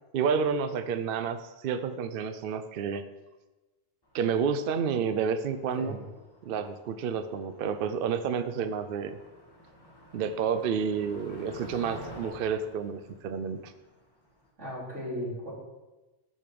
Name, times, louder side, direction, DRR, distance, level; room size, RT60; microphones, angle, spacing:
voice 1, 0.1-3.0 4.1-6.0 6.4-9.2 10.1-13.7, right 6 dB, 60° right, 11 dB, 0.6 m, -30 dB
Motor vehicle (road), 4.1-14.5, left 1 dB, 20° left, 1.4 m, -50 dB
voice 2, 14.6-15.5, equal, 90° right, -7 dB, 3.4 m, -36 dB
6.8 x 5.2 x 6.8 m, 1.1 s
omnidirectional pair, 1.2 m